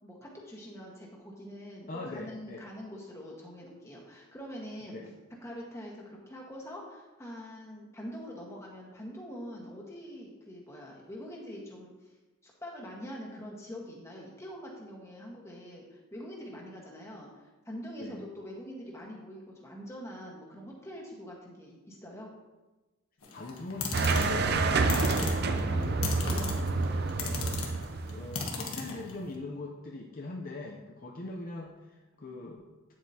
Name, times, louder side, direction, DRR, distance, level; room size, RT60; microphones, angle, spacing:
voice 1, 0.0-5.0 5.4-12.1 12.4-22.3 26.8-27.1, equal, 10° left, -2 dB, 1.4 m, -44 dB
voice 2, 1.9-2.7 4.9-5.1 18.0-18.3 23.3-26.6 27.2-27.6 28.1-32.9, left 2 dB, 40° left, 0 dB, 0.6 m, -41 dB
sound 1, 23.2-29.3, left 4 dB, 75° left, 1.4 m, -37 dB
sound 2, 23.9-28.6, right 3 dB, 45° right, 0.5 m, -28 dB
9.3 x 7.5 x 2.8 m, 1.1 s
head